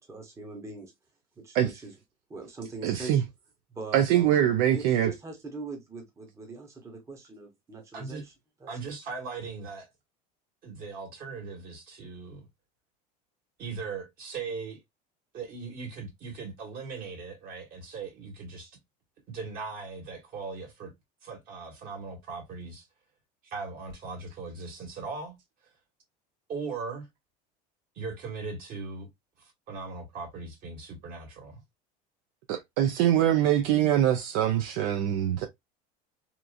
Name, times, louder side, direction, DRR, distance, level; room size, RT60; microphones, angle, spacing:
voice 1, 0.1-0.9 1.4-1.9 2.3-3.2 3.7-8.3 8.6-8.7, right 3 dB, 15° right, 0.8 m, -42 dB
voice 2, 2.8-3.2 3.9-5.1 32.8-35.5, right 11 dB, 70° right, 0.5 m, -23 dB
voice 3, 8.7-9.9 10.6-12.5 13.6-14.8 15.3-18.8 19.3-20.9 21.2-22.9 23.4-25.4 26.5-27.1 27.9-29.1 29.4-31.6, right 4 dB, 50° right, 1.6 m, -39 dB
2.9 x 2.5 x 2.3 m
supercardioid pair, 130°, 19 cm